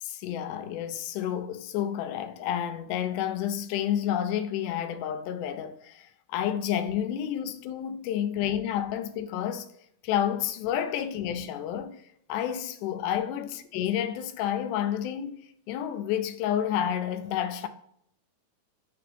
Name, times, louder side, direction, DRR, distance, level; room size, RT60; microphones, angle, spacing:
voice 1, 0.0-9.7 10.0-12.0 12.3-15.4 15.7-17.7, left 10 dB, 80° left, 2.1 m, -30 dB
6.7 x 5.3 x 2.6 m
omnidirectional pair, 3.7 m